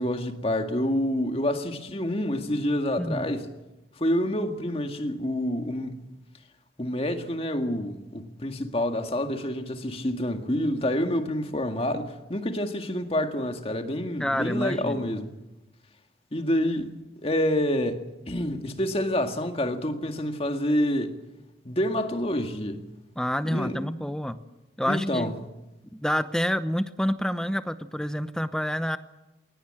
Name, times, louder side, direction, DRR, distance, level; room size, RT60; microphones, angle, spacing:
voice 1, 0.0-3.5 4.0-6.0 6.8-15.3 16.3-16.9 17.2-21.2 21.6-22.9 23.4-23.8 24.9-25.3, left 1 dB, 35° left, 1.9 m, -27 dB
voice 2, 3.0-3.3 14.2-15.1 23.2-24.4 24.8-25.3 25.9-29.0, equal, 5° left, 0.8 m, -28 dB
21.5 x 19.5 x 8.9 m
head